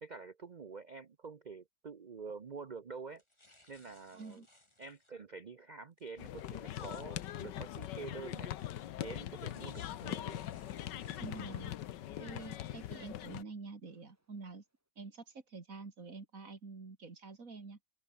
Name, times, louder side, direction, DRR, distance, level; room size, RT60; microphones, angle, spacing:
voice 1, 0.0-3.2 3.7-4.5 4.8-8.5 9.0-10.4, right 4 dB, 65° right, 0.4 m, -47 dB
sound 1, 3.1-5.1 6.0-7.1 7.8-11.2, left 1 dB, 15° left, 4.3 m, -65 dB
voice 2, 4.1-4.5 11.2-11.7 12.2-14.6 15.0-17.8, right 4 dB, 50° right, 3.1 m, -47 dB
sound 2, 6.2-13.4, left 12 dB, 80° left, 1.5 m, -42 dB
sound 3, 9.7-10.1 10.6-11.7 12.2-13.3 13.9-14.3, right 1 dB, 10° right, 2.6 m, -63 dB
open air
omnidirectional pair, 1.9 m